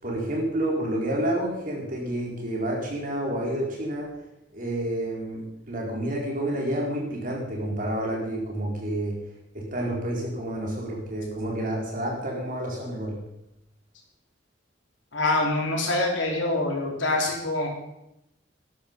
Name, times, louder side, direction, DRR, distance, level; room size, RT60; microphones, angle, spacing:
voice 1, 0.0-4.1 4.5-9.2 9.5-13.2, right 1 dB, 45° right, -2 dB, 4.4 m, -29 dB
voice 2, 15.1-17.7, left 2 dB, 85° left, -1 dB, 4.0 m, -25 dB
13.0 x 12.0 x 5.4 m, 0.86 s
head